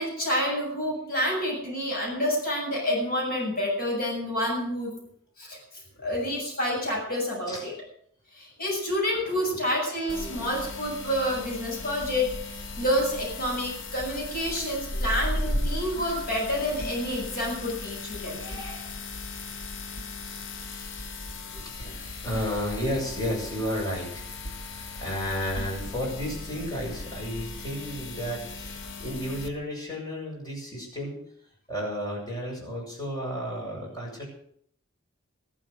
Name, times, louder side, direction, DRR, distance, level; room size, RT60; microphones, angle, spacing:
voice 1, 0.0-4.9 5.4-5.6 6.0-7.7 8.3-18.4, equal, 45° left, -1 dB, 7.4 m, -28 dB
voice 2, 6.0-6.3 7.5-7.6 9.4-9.7 10.2-10.5 14.9-15.1 18.3-19.2 21.4-24.2 24.6-31.2 31.7-34.3, equal, 20° left, -2 dB, 6.8 m, -33 dB
sound 1, 10.1-29.5, left 2 dB, 65° left, 1.3 m, -36 dB
14.0 x 12.5 x 6.6 m, 0.66 s
head